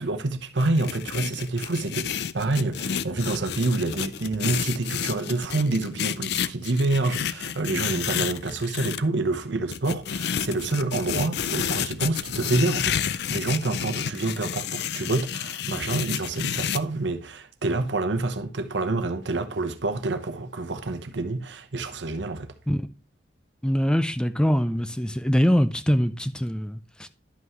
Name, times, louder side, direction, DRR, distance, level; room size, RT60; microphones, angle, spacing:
voice 1, 0.0-22.5, right 2 dB, 85° right, 0.9 m, -27 dB
sound 1, 0.6-9.0 9.7-16.8, left 8 dB, 65° left, 0.4 m, -30 dB
voice 2, 23.6-27.1, equal, 5° left, 0.4 m, -23 dB
11.0 x 5.6 x 3.0 m
head